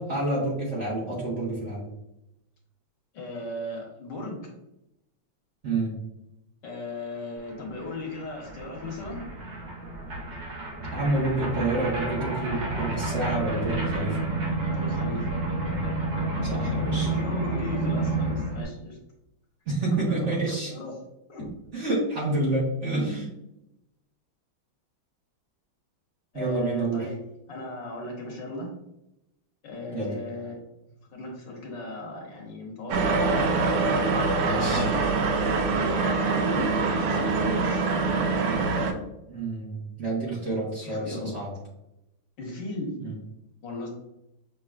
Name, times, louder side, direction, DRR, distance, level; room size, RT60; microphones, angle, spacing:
voice 1, 0.0-1.9 5.6-6.0 10.9-14.2 16.4-17.1 19.7-20.7 21.7-23.3 26.3-27.0 29.9-30.1 34.3-34.9 39.3-41.5 43.0-43.2, right 2 dB, 40° right, -6 dB, 1.3 m, -28 dB
voice 2, 3.1-4.5 6.6-9.3 14.7-15.3 16.4-19.0 19.9-20.9 21.3-21.5 26.3-27.2 27.5-28.7 29.6-30.6 31.1-33.4 34.5-35.2 35.8-37.8 40.8-41.4 42.4-42.9 43.6-43.9, left 2 dB, 65° left, 0 dB, 1.5 m, -37 dB
sound 1, 7.5-7.6 7.8-18.6, right 2 dB, 65° right, 1.8 m, -30 dB
sound 2, 32.9-38.9, right 3 dB, 90° right, 1.6 m, -24 dB
6.3 x 3.0 x 2.4 m, 0.88 s
omnidirectional pair, 2.3 m